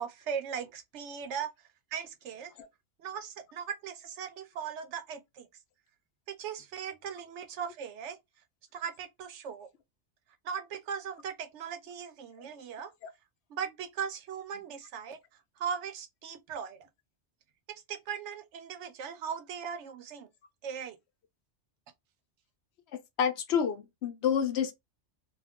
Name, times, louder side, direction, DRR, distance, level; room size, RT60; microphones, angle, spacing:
voice 1, 0.0-1.5 1.9-2.5 3.0-5.5 6.3-8.2 8.7-9.7 10.4-12.9 13.5-15.2 15.6-16.8 17.7-20.3 20.6-21.0, right 7 dB, 80° right, 0.9 m, -38 dB
voice 2, 23.2-24.7, left 7 dB, 70° left, 0.9 m, -28 dB
2.5 x 2.3 x 3.4 m
omnidirectional pair, 1.2 m